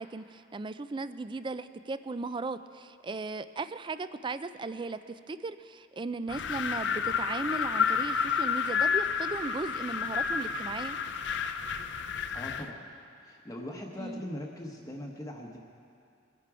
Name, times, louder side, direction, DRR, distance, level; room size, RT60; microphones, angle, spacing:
voice 1, 0.0-11.0 14.0-14.2, right 3 dB, 25° right, 13 dB, 0.4 m, -37 dB
Wind, 6.3-12.7, left 6 dB, 65° left, 0.6 m, -30 dB
voice 2, 12.3-12.9 13.2-15.6, left 1 dB, 15° left, 0 dB, 0.9 m, -40 dB
22.0 x 10.5 x 4.9 m, 2.4 s
head